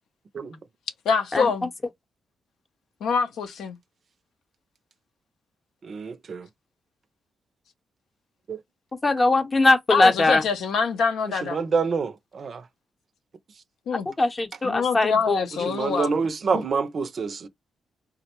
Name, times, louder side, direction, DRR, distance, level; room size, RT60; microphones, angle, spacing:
voice 1, 1.0-1.7 3.0-3.8 9.9-11.6 13.9-14.1 14.6-16.2, left 5 dB, 80° left, 0.6 m, -25 dB
voice 2, 5.8-6.5 8.5-8.6 11.5-12.6 15.7-17.5, right 5 dB, 55° right, 0.4 m, -27 dB
voice 3, 9.0-10.4 14.1-15.4, left 2 dB, 30° left, 0.7 m, -20 dB
3.6 x 2.1 x 2.8 m
cardioid pair, 70°, 0 cm